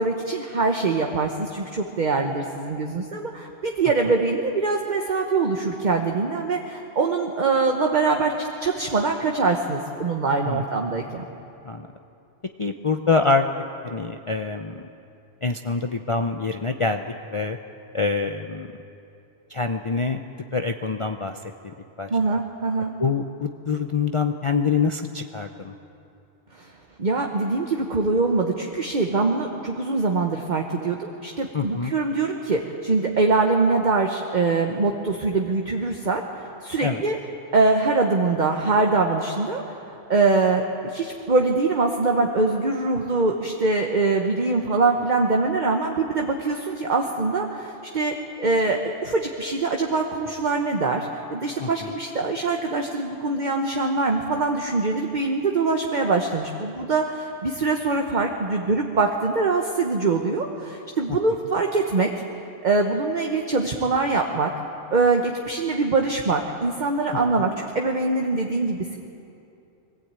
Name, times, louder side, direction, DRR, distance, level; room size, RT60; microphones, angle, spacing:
voice 1, 0.0-11.2 22.1-22.9 26.5-26.7 27.0-37.2 37.5-62.1 62.6-64.5 64.9-69.0, right 3 dB, 40° right, 2 dB, 1.2 m, -23 dB
voice 2, 12.6-13.4 13.8-14.8 15.4-17.0 17.3-17.6 17.9-18.7 19.5-20.2 20.5-22.4 23.0-25.7 31.5-31.9 36.8-37.0 51.6-51.9 61.1-61.2 67.4-67.5, left 4 dB, 35° left, 4 dB, 0.6 m, -25 dB
21.5 x 15.0 x 8.9 m, 2.7 s
omnidirectional pair, 1.2 m